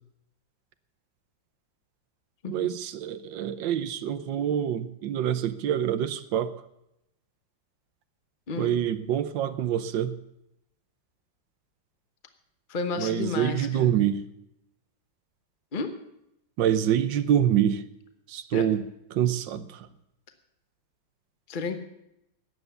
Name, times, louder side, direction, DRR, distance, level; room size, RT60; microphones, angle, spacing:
voice 1, 2.5-6.5 8.6-10.1 13.0-14.2 16.6-17.8 18.3-18.8 19.1-19.9, right 10 dB, 85° right, 12 dB, 1.5 m, -26 dB
voice 2, 8.5-8.8 12.7-14.1 15.7-15.9 18.5-18.7 21.5-21.8, left 4 dB, 35° left, 7 dB, 1.0 m, -32 dB
15.0 x 9.9 x 6.9 m, 0.82 s
omnidirectional pair, 2.0 m